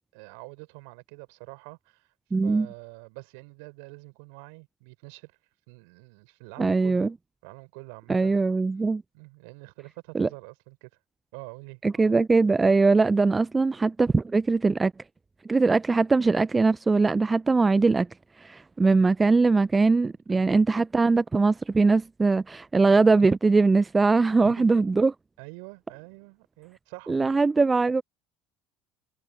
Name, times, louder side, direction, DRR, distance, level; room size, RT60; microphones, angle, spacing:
voice 1, 0.1-2.1 2.4-5.3 5.7-7.1 7.4-8.5 9.1-10.9 11.3-12.1 20.3-20.5 22.7-23.0 24.4-24.8 25.4-27.4, right 33 dB, 70° right, 4.2 m, -45 dB
voice 2, 2.3-2.7 6.6-7.1 8.1-9.0 10.1-10.3 11.8-14.9 15.5-18.1 18.4-25.1 27.1-28.0, right 3 dB, 20° right, 0.4 m, -21 dB
hypercardioid pair, 65°, 0 cm